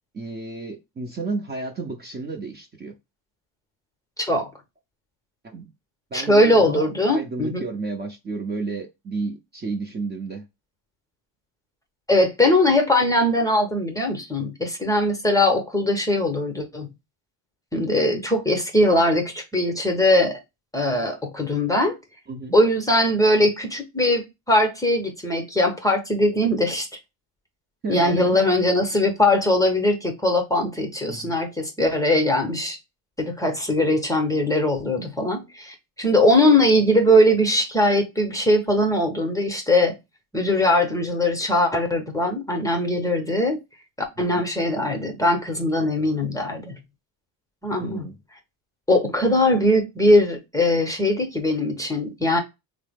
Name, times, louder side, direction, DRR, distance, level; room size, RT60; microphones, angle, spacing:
voice 1, 0.1-2.9 5.4-5.7 6.1-10.4 22.3-22.5 27.8-28.4 31.1-31.4 44.3-44.4 47.8-48.1, right 3 dB, 25° right, 0.6 m, -32 dB
voice 2, 4.2-4.5 6.1-7.7 12.1-16.9 17.7-20.4 20.7-22.0 22.5-26.9 27.9-32.8 33.2-39.9 40.3-43.6 44.2-46.8 47.6-48.1 48.9-52.4, left 1 dB, 10° left, 0.7 m, -20 dB
3.3 x 2.0 x 3.4 m
cardioid pair, 115°, 40 cm